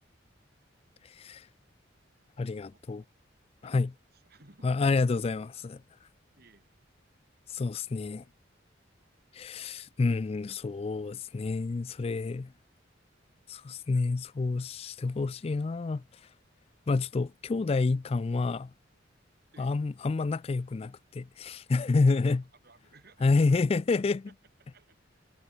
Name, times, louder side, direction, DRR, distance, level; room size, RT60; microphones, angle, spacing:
voice 1, 1.0-1.5 2.4-3.0 3.6-3.9 4.6-6.1 7.5-8.2 9.3-12.5 13.5-16.3 16.9-18.7 19.6-22.4 23.2-24.2, left 3 dB, 30° left, 0.3 m, -29 dB
voice 2, 2.6-3.1 3.6-3.8 4.1-4.7 6.4-6.7 19.5-19.8 22.2-22.4 22.6-23.8 24.7-25.0, right 3 dB, 55° right, 3.6 m, -59 dB
head